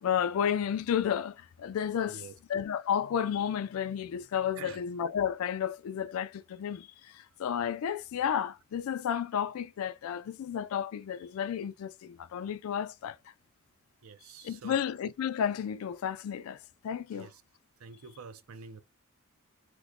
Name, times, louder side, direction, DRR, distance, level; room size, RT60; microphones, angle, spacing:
voice 1, 0.0-2.2 2.5-6.9 7.1-13.2 14.4-16.6 16.8-17.3, left 8 dB, 80° left, 0.3 m, -32 dB
voice 2, 1.9-2.4 4.5-4.8 14.0-14.8 17.1-17.4 17.8-18.8, right 5 dB, 80° right, 0.5 m, -47 dB
3.0 x 2.1 x 3.6 m
head